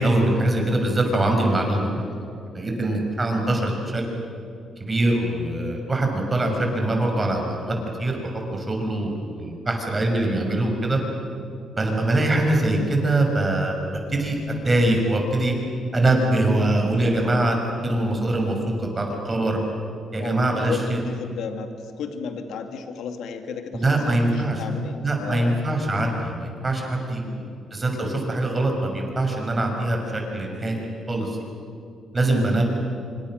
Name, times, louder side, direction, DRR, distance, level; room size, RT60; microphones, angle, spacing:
voice 1, 0.0-2.1 2.5-4.0 4.8-11.0 11.8-13.8 14.1-15.5 15.9-17.6 17.8-19.6 20.1-21.0 23.7-24.6 25.0-27.2 27.7-31.4 32.1-32.6, right 1 dB, 25° right, 2 dB, 6.3 m, -23 dB
voice 2, 2.8-3.1 12.1-12.4 20.2-25.6 27.2-27.6, left 6 dB, 80° left, 6 dB, 2.2 m, -34 dB
27.0 x 25.5 x 6.6 m, 2.6 s
cardioid pair, 90°, 0 cm